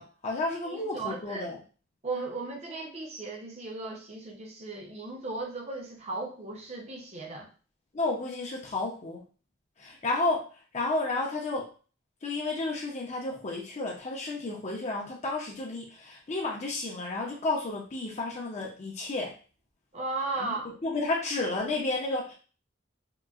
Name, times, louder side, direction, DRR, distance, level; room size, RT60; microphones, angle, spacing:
voice 1, 0.0-1.6 7.9-9.2 9.8-10.5 10.7-11.7 12.2-19.3 20.4-22.3, left 2 dB, 35° left, -1 dB, 0.5 m, -32 dB
voice 2, 0.6-1.5 2.0-7.5 19.9-20.7, right 3 dB, 35° right, 1 dB, 0.6 m, -36 dB
3.7 x 2.1 x 2.3 m, 0.37 s
head